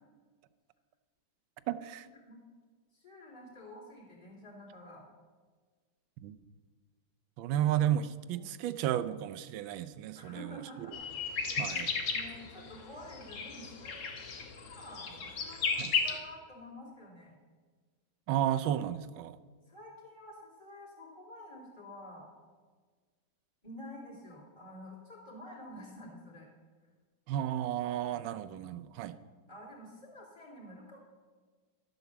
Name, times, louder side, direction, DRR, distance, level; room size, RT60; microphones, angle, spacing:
voice 1, 1.7-2.1 6.2-6.4 7.4-10.4 11.6-11.9 15.8-15.9 18.3-19.4 27.3-29.1, right 11 dB, 80° right, 12 dB, 1.4 m, -32 dB
voice 2, 2.9-5.0 8.3-8.5 10.1-11.0 11.6-11.7 12.1-14.0 14.6-17.3 19.7-22.3 23.6-26.5 29.1-31.0, left 1 dB, 15° left, -6 dB, 3.0 m, -49 dB
sound 1, 10.9-16.2, left 5 dB, 75° left, 2.1 m, -34 dB
13.0 x 8.0 x 7.0 m, 1.5 s
omnidirectional pair, 2.2 m